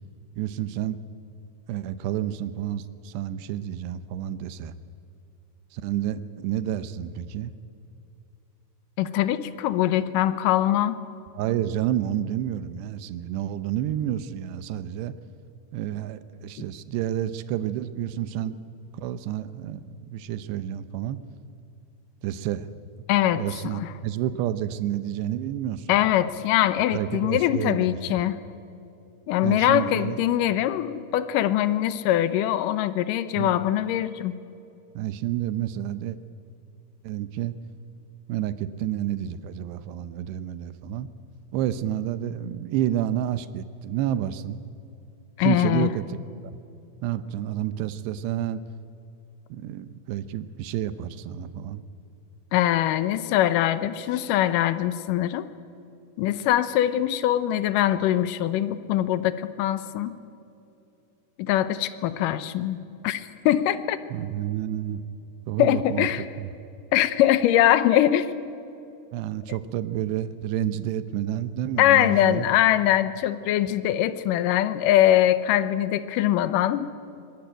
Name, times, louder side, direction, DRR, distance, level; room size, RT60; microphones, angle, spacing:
voice 1, 0.4-1.0 1.7-4.7 5.7-7.5 11.3-15.1 15.7-18.6 18.9-21.2 22.2-22.7 23.4-26.0 26.9-28.2 29.4-30.2 33.4-33.5 35.0-36.2 37.0-37.5 38.3-41.1 41.5-44.6 45.4-46.6 47.0-48.6 49.5-51.8 64.1-65.0 65.5-66.1 66.4-66.5 69.1-72.5, right 11 dB, 85° right, 13 dB, 3.0 m, -29 dB
voice 2, 9.0-11.0 23.1-23.9 25.9-28.4 29.3-34.3 45.4-45.9 52.5-55.5 56.2-60.1 61.4-62.8 63.0-64.0 65.6-66.2 66.9-68.3 71.8-76.9, left 12 dB, 75° left, 13 dB, 2.0 m, -22 dB
25.5 x 20.0 x 9.0 m, 2.7 s
omnidirectional pair, 4.8 m